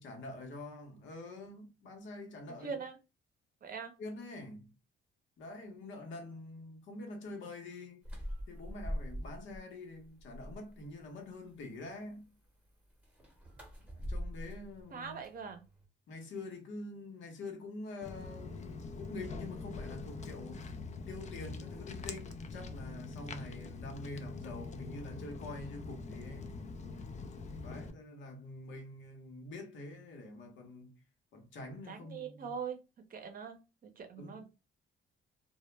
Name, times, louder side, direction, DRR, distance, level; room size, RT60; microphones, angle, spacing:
voice 1, 0.0-2.8 4.0-4.7 5.4-8.0 8.5-12.3 13.9-15.2 16.1-20.7 21.1-26.5 27.6-31.0 31.3-32.6 34.1-34.4, left 2 dB, 75° left, 0.9 m, -46 dB
voice 2, 2.5-3.0 3.6-3.9 14.9-15.6 31.9-32.8 33.1-34.4, right 6 dB, 45° right, 0.6 m, -42 dB
sound 1, 8.0-9.6 10.0-10.8 13.0-15.9, equal, 5° right, 0.8 m, -43 dB
Walk footsteps, 18.0-27.9, left 4 dB, 35° left, 0.4 m, -44 dB
2.2 x 2.1 x 3.1 m
cardioid pair, 90°, 20 cm